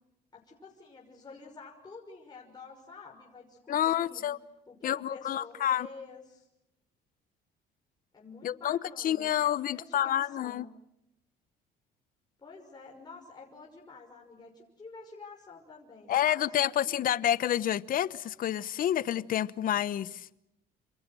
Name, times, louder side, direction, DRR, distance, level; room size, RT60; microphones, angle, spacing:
voice 1, 0.3-4.2 4.7-6.5 8.1-10.7 12.4-17.0, left 4 dB, 25° left, 6.1 m, -49 dB
voice 2, 3.7-4.4 4.8-5.9 8.4-10.6 16.1-20.3, left 11 dB, 55° left, 1.0 m, -29 dB
30.0 x 27.5 x 6.3 m
cardioid pair, 110°, 17 cm